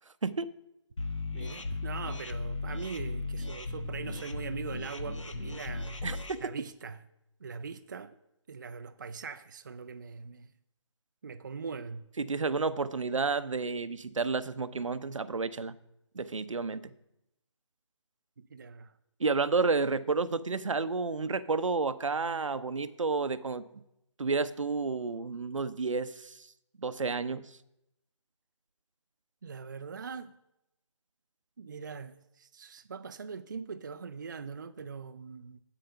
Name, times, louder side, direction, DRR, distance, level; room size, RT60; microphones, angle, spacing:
sound 1, 1.0-6.3, left 3 dB, 80° left, 1.4 m, -36 dB
voice 1, 1.3-6.0 6.4-7.0 7.4-8.2 8.5-10.5 11.2-12.1 18.4-18.9 29.4-30.3 31.6-35.6, right 5 dB, 40° right, 0.4 m, -41 dB
voice 2, 6.0-6.4 12.2-15.7 16.1-16.8 19.2-23.6 24.2-26.5 26.8-27.5, right 4 dB, 85° right, 0.7 m, -31 dB
8.2 x 7.8 x 5.6 m
figure-of-eight pair, 165°, 16 cm